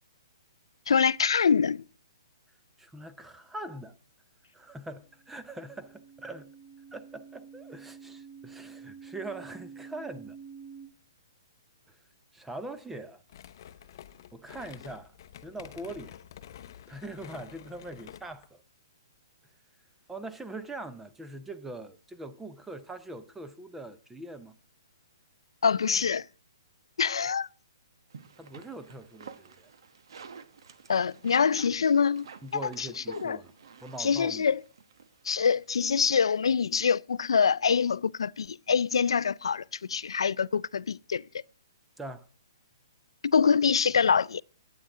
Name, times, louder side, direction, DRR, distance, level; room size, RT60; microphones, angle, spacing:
voice 1, 0.9-1.8 25.6-26.3 27.0-27.5 30.9-32.3 32.8-33.4 34.0-34.6 35.2-41.2 43.2-44.4, left 6 dB, 85° left, 0.4 m, -25 dB
voice 2, 2.8-3.9 4.5-6.5 6.9-10.4 11.9-12.0 12.3-13.2 14.3-15.1 15.4-16.2 16.9-18.6 20.1-24.6 28.4-29.7 32.4-33.5 33.8-34.5 42.0-42.3, right 2 dB, 5° right, 0.7 m, -42 dB
sound 1, 5.1-10.9, right 6 dB, 35° right, 3.5 m, -48 dB
sound 2, 13.3-18.5, left 10 dB, 50° left, 0.7 m, -49 dB
sound 3, 28.1-36.1, right 6 dB, 65° right, 1.3 m, -51 dB
12.5 x 8.6 x 3.6 m
hypercardioid pair, 150°, 3 cm